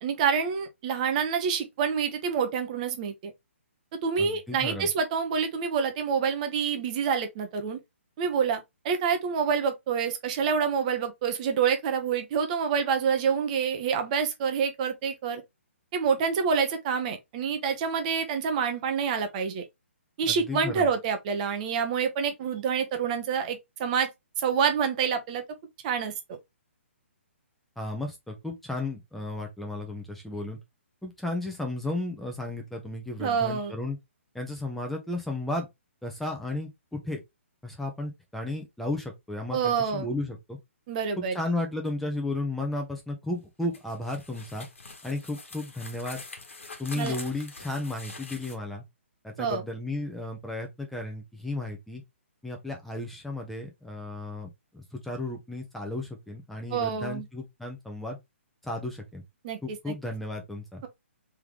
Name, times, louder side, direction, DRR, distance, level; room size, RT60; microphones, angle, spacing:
voice 1, 0.0-3.3 4.0-7.8 8.2-15.4 15.9-19.6 20.2-24.1 24.4-25.4 25.8-26.4 33.2-33.7 39.5-40.1 40.9-41.4 47.0-47.1 49.4-49.6 56.7-57.2 59.4-59.6 59.9-60.0, right 6 dB, 35° right, 0.9 m, -27 dB
voice 2, 4.2-4.9 20.3-20.9 27.8-30.6 31.0-34.0 34.3-35.7 36.0-37.2 37.6-40.6 41.2-44.7 45.0-46.2 46.8-48.8 49.2-52.0 52.4-54.5 54.7-58.2 58.6-59.2 59.6-60.8, left 2 dB, 5° left, 0.9 m, -34 dB
sound 1, 43.7-48.6, left 3 dB, 75° left, 1.4 m, -44 dB
3.6 x 3.5 x 2.9 m
figure-of-eight pair, 130°, 7 cm